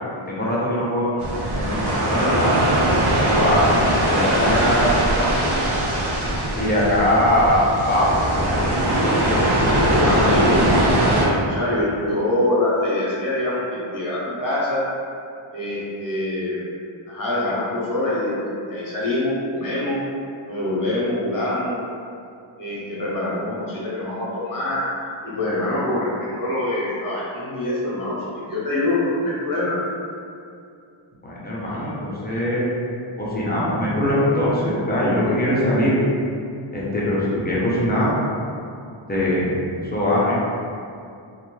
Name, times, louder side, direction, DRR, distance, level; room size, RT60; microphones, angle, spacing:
voice 1, 0.3-1.2 1.5-2.6 3.3-3.7 4.1-5.6 6.5-8.1 31.2-32.7 33.2-36.0 36.7-38.1 39.1-39.5 39.9-40.4, left 1 dB, 20° left, -7 dB, 0.6 m, -21 dB
sound 1, 1.2-11.3, right 1 dB, 55° right, 0.6 m, -20 dB
voice 2, 9.5-10.7 11.1-14.8 15.5-16.7 17.1-20.0 20.5-21.8 22.6-24.8 25.2-29.8, left 1 dB, 40° left, -7 dB, 0.9 m, -24 dB
2.6 x 2.2 x 3.0 m, 2.5 s
wide cardioid pair, 120°, 48 cm